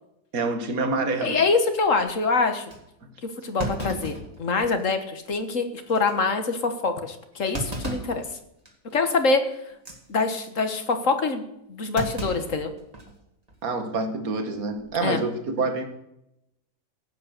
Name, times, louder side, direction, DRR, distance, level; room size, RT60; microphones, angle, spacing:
voice 1, 0.3-1.4 13.6-15.9, right 3 dB, 60° right, 2.1 m, -27 dB
voice 2, 1.2-2.7 3.4-8.2 8.9-9.5 10.1-12.7 15.0-15.2, left 4 dB, 50° left, 1.7 m, -25 dB
Thump thud, 1.8-2.1 2.7-2.8 3.6-4.9 5.3-5.4 5.9-6.1 7.5-8.2 8.7-8.9 9.7-10.0 12.0-13.2 13.5-13.6 14.7-15.1, right 1 dB, 25° right, 2.2 m, -34 dB
16.0 x 8.7 x 6.6 m
omnidirectional pair, 1.7 m